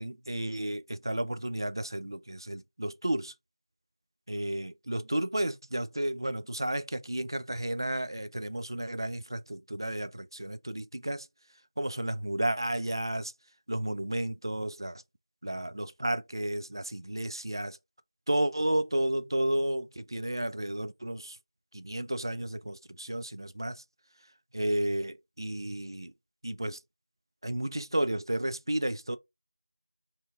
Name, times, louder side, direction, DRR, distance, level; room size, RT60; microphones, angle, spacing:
voice 1, 0.0-3.3 4.3-11.3 11.8-13.3 13.7-15.0 15.4-17.8 18.3-21.4 21.7-23.8 24.5-26.1 26.4-26.8 27.4-29.2, right 1 dB, 55° right, 0.5 m, -32 dB
4.3 x 2.8 x 2.4 m
figure-of-eight pair, 175°, 3 cm